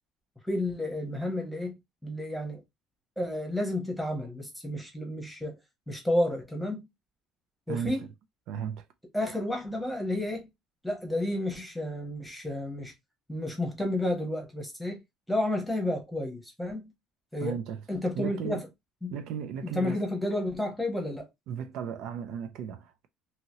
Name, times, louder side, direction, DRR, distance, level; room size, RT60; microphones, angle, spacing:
voice 1, 0.4-2.6 3.2-5.6 5.9-6.8 7.7-8.0 9.1-10.5 10.8-12.9 13.3-15.0 15.3-16.9 17.3-17.6 17.9-18.7 19.0-19.1 19.6-21.3, left 1 dB, ahead, 1.0 m, -31 dB
voice 2, 8.5-8.8 17.4-17.8 18.2-18.6 19.1-20.0 21.5-23.1, right 8 dB, 60° right, 0.4 m, -35 dB
2.8 x 2.7 x 2.8 m
cardioid pair, 170°, 0 cm